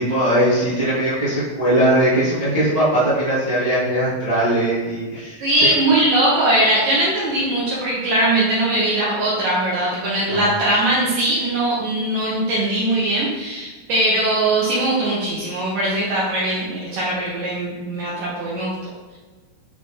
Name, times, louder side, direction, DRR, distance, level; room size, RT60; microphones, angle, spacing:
voice 1, 0.0-5.4 10.3-10.5, right 1 dB, 40° right, -11 dB, 0.5 m, -20 dB
voice 2, 5.4-18.9, right 1 dB, 70° right, -7 dB, 2.3 m, -20 dB
7.6 x 3.8 x 3.4 m, 1.3 s
omnidirectional pair, 4.4 m